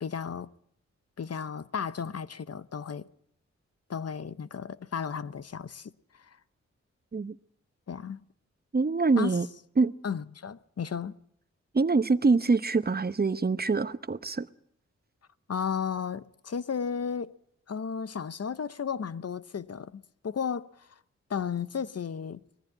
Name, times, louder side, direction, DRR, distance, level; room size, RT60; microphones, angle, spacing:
voice 1, 0.0-0.5 1.2-3.1 3.9-6.4 7.9-8.2 9.2-9.4 10.0-11.1 15.5-17.3 17.7-20.9 21.3-22.4, left 6 dB, 60° left, 0.9 m, -34 dB
voice 2, 8.7-9.5 9.8-9.9 11.7-14.5, right 4 dB, 35° right, 1.0 m, -25 dB
20.5 x 14.5 x 9.9 m
cardioid pair, 50°, 29 cm